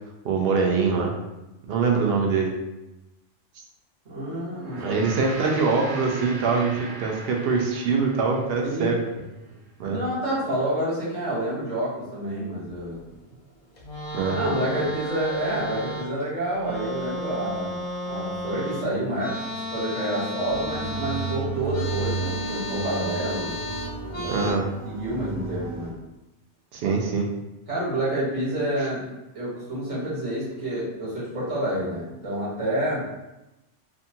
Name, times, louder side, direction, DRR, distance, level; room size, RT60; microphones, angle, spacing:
voice 1, 0.2-1.1 1.7-2.6 3.6-3.7 4.8-9.0 9.8-10.0 14.1-14.4 24.3-24.7 26.7-27.3, right 4 dB, 65° right, 1 dB, 0.7 m, -23 dB
voice 2, 4.0-5.0 8.6-9.0 9.5-9.6 9.9-13.0 14.3-17.8 18.1-23.6 24.1-24.5 24.9-26.0 26.8-27.0 27.7-29.1 29.3-33.1, right 1 dB, 40° right, -8 dB, 1.2 m, -28 dB
Gong, 4.5-9.1, right 2 dB, 85° right, 1.0 m, -39 dB
sound 1, 13.8-16.2 16.5-24.5, left 1 dB, 45° left, 0.6 m, -33 dB
sound 2, 20.5-25.9, right 4 dB, 20° right, 0.5 m, -33 dB
2.6 x 2.4 x 2.7 m, 0.97 s
omnidirectional pair, 1.3 m